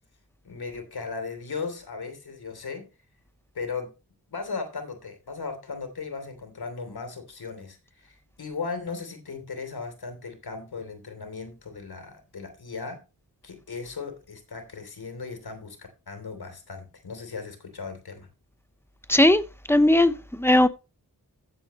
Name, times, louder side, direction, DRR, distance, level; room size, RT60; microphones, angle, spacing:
voice 1, 0.4-2.9 3.5-3.9 4.3-13.0 13.4-18.3, left 4 dB, 90° left, 3.3 m, -37 dB
voice 2, 19.1-19.4 19.7-20.7, left 1 dB, 5° left, 1.0 m, -18 dB
15.5 x 7.8 x 3.1 m
wide cardioid pair, 70°, 37 cm